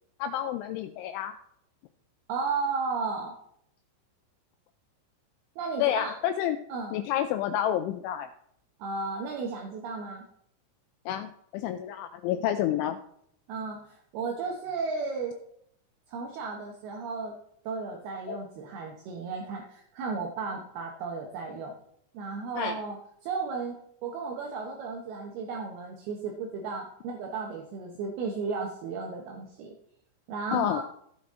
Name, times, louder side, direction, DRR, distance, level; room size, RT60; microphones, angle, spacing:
voice 1, 0.2-1.3 5.8-6.6 6.9-8.3 11.1-13.0 18.3-18.4 22.6-22.8 30.5-30.8, left 11 dB, 85° left, 9 dB, 2.7 m, -29 dB
voice 2, 2.3-3.3 5.6-6.1 6.7-7.0 8.8-10.2 13.5-15.3 16.1-17.3 17.6-21.7 22.1-23.0 23.2-23.8 24.0-29.7 30.3-30.8, right 4 dB, 75° right, 1 dB, 2.3 m, -34 dB
16.0 x 6.0 x 3.7 m, 0.71 s
omnidirectional pair, 5.9 m